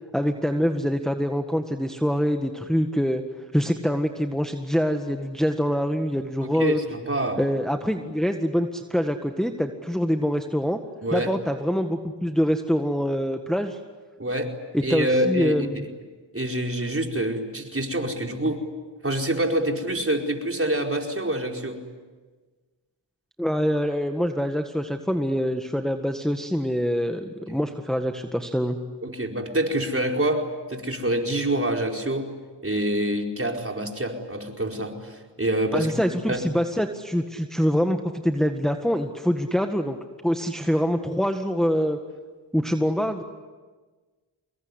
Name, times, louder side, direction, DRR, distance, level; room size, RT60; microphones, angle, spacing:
voice 1, 0.1-3.2 3.5-6.8 7.4-10.8 11.1-13.8 14.7-15.8 23.4-28.8 35.7-40.0 40.2-42.0 42.5-43.2, equal, ahead, 5 dB, 1.7 m, -25 dB
voice 2, 6.4-7.4 11.0-11.3 14.2-14.5 14.8-15.8 16.3-18.6 19.0-21.8 27.5-27.6 29.0-32.3 32.6-36.4, right 1 dB, 30° right, 2 dB, 4.7 m, -26 dB
26.0 x 21.5 x 9.9 m, 1.4 s
cardioid pair, 40°, 43 cm